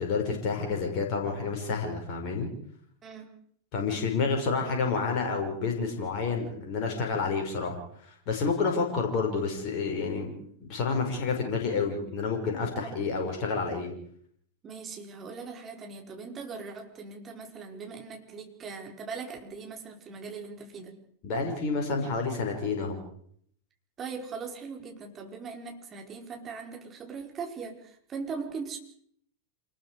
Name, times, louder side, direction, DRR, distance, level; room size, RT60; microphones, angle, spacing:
voice 1, 0.0-2.5 3.7-13.9 21.2-23.0, left 4 dB, 40° left, 2 dB, 5.8 m, -29 dB
voice 2, 14.6-21.0 24.0-28.8, right 5 dB, 25° right, 2 dB, 4.8 m, -40 dB
28.0 x 20.5 x 5.0 m, 0.64 s
figure-of-eight pair, 90°, 0 cm